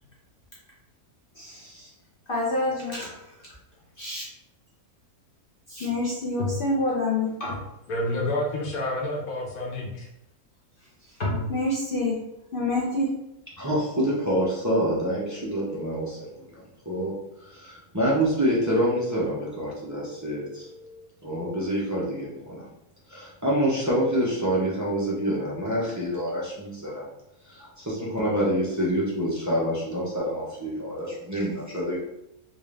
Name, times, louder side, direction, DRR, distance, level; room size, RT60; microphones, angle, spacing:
voice 1, 1.4-1.9 2.3-3.2 4.0-4.2 5.7-7.6 11.2-12.2 12.5-13.1, left 2 dB, 50° left, -5 dB, 0.7 m, -27 dB
voice 2, 7.9-10.1, left 1 dB, 75° left, -2 dB, 1.4 m, -29 dB
voice 3, 13.6-17.1 17.4-22.7 23.1-27.1 27.5-32.0, equal, 20° right, -7 dB, 0.5 m, -27 dB
3.7 x 2.5 x 3.2 m, 0.83 s
omnidirectional pair, 1.6 m